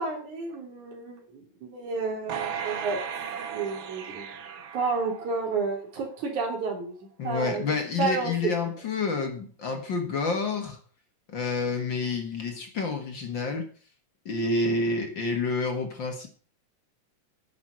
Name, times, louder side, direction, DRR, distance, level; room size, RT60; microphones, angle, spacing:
voice 1, 0.0-3.0 3.5-4.3 4.7-7.0 7.2-8.5, right 4 dB, 90° right, 1 dB, 4.6 m, -31 dB
sound 1, 2.3-5.7 6.2-6.3, right 7 dB, 55° right, 1.5 m, -36 dB
voice 2, 7.2-10.8 11.3-13.7 14.3-16.3, left 3 dB, 45° left, 5 dB, 2.1 m, -29 dB
11.0 x 6.2 x 7.5 m, 0.42 s
omnidirectional pair, 3.3 m